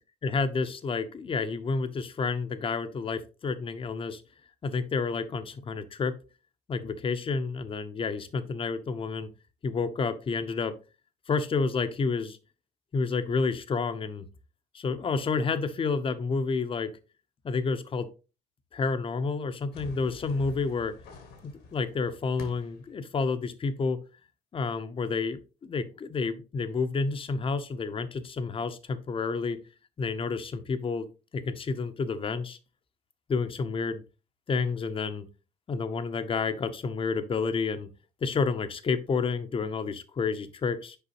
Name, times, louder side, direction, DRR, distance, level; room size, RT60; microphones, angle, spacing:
voice 1, 0.2-4.2 4.6-6.2 6.7-9.3 9.6-10.8 11.3-12.4 12.9-14.3 14.7-16.9 17.4-18.0 18.7-20.9 21.4-24.0 24.5-29.6 30.0-31.1 31.3-32.6 33.3-34.0 34.5-35.3 35.7-37.9 38.2-41.0, left 4 dB, 30° left, 11 dB, 0.7 m, -30 dB
sound 1, 19.7-22.9, left 4 dB, 85° left, 1.9 m, -47 dB
6.9 x 4.7 x 3.0 m, 0.31 s
cardioid pair, 110°, 17 cm